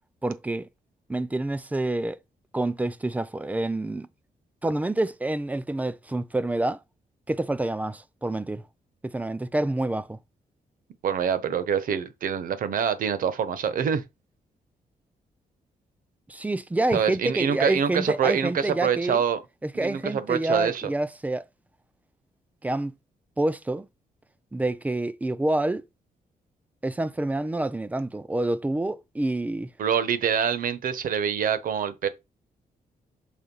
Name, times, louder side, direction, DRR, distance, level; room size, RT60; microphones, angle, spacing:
voice 1, 0.2-0.7 1.1-2.2 2.5-4.1 4.6-6.8 7.3-8.6 9.0-10.2 16.3-19.2 19.6-21.4 22.6-22.9 23.4-23.9 24.5-25.8 26.8-29.7, right 2 dB, 10° right, 0.4 m, -27 dB
voice 2, 11.0-14.0 16.9-19.4 19.7-20.9 29.8-32.1, right 7 dB, 65° right, 1.0 m, -25 dB
6.5 x 3.2 x 5.4 m
wide cardioid pair, 175°, 15 cm